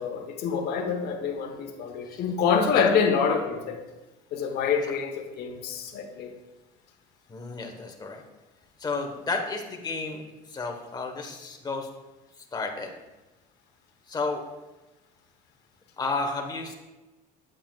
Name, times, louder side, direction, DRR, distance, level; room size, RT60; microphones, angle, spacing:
voice 1, 0.0-3.8 4.3-6.3, left 6 dB, 65° left, 3 dB, 1.1 m, -26 dB
voice 2, 7.3-8.2 8.8-10.2 10.5-11.9 12.5-12.9 14.1-14.4 16.0-16.7, left 3 dB, 20° left, 2 dB, 1.2 m, -32 dB
8.4 x 7.6 x 2.4 m, 1.1 s
cardioid pair, 105°, 18 cm